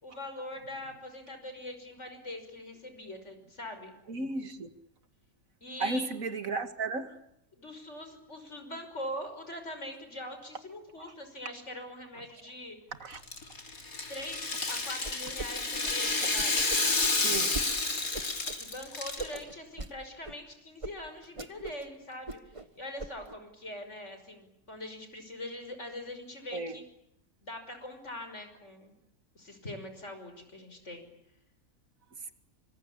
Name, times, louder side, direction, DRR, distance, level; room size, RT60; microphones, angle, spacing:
voice 1, 0.0-3.9 5.6-6.0 7.5-12.8 14.1-16.7 18.6-22.4 22.8-26.8 27.4-28.9 29.3-31.1, left 1 dB, 55° left, 7 dB, 6.1 m, -42 dB
voice 2, 4.1-4.7 5.8-7.2 11.1-11.2 12.2-12.3 13.0-13.2 14.6-14.7 17.2-17.6 26.5-26.8 32.2-32.3, right 3 dB, 70° right, 9 dB, 2.4 m, -35 dB
Rattle (instrument), 13.1-19.4, left 3 dB, 80° left, 3.8 m, -30 dB
sound 1, 15.0-15.5 15.7-17.7 18.1-18.6 19.2-19.9 20.2-20.4 20.8-20.9 21.2-21.8 22.1-22.7 23.0-23.3, right 3 dB, 25° right, 1.6 m, -40 dB
26.5 x 25.5 x 8.7 m, 0.79 s
omnidirectional pair, 1.5 m